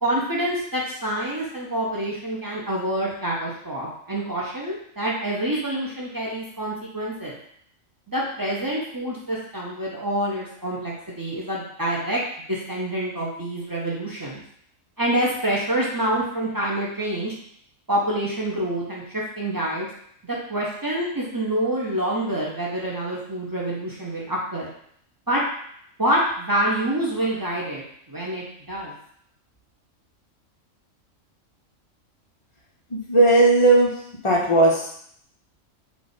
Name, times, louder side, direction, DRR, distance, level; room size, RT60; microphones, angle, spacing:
voice 1, 0.0-7.4 8.1-12.2 12.5-14.4 15.0-17.3 17.9-19.9 20.2-24.7 25.3-25.4 26.0-28.9, right 1 dB, 35° right, -4 dB, 0.3 m, -27 dB
voice 2, 32.9-33.9 34.2-34.9, right 2 dB, 50° left, -3 dB, 0.3 m, -16 dB
3.5 x 2.4 x 3.9 m, 0.66 s
omnidirectional pair, 1.4 m